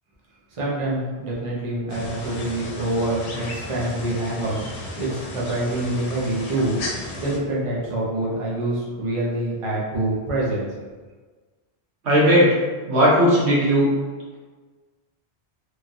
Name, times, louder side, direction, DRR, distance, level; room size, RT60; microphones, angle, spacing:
voice 1, 0.5-4.6 5.0-6.8 7.2-10.7, right 1 dB, 35° right, -5 dB, 0.7 m, -26 dB
sound 1, 1.9-7.4, left 2 dB, 85° left, 0.9 m, -34 dB
voice 2, 12.0-12.6 12.9-13.9, equal, 90° right, -7 dB, 1.3 m, -16 dB
3.1 x 2.3 x 2.7 m, 1.4 s
omnidirectional pair, 1.1 m